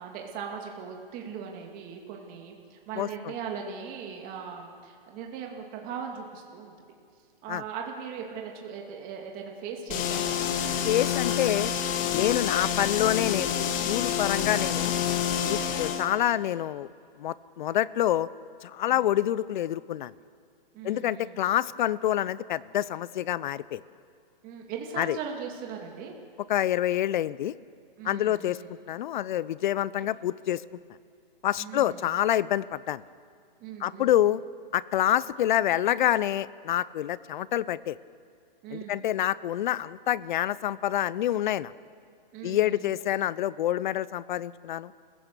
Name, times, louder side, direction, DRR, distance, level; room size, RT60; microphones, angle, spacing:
voice 1, 0.0-6.7 7.4-10.8 15.5-16.0 18.9-19.0 20.7-21.3 24.4-26.1 28.0-28.7 31.6-32.0 33.6-34.1 38.6-39.0 42.3-42.9, right 6 dB, 30° right, 1 dB, 2.4 m, -39 dB
sound 1, 9.9-16.1, left 8 dB, 30° left, 1.5 m, -28 dB
voice 2, 10.8-11.7 12.1-13.5 13.9-14.9 15.4-16.9 17.2-18.3 18.6-20.1 20.8-23.8 25.0-25.2 26.5-27.5 28.0-30.6 31.4-33.0 33.8-34.4 34.7-38.0 38.7-41.7 42.4-44.9, left 12 dB, 55° left, 20 dB, 0.6 m, -27 dB
27.5 x 16.5 x 6.8 m, 2.2 s
hypercardioid pair, 135°, 29 cm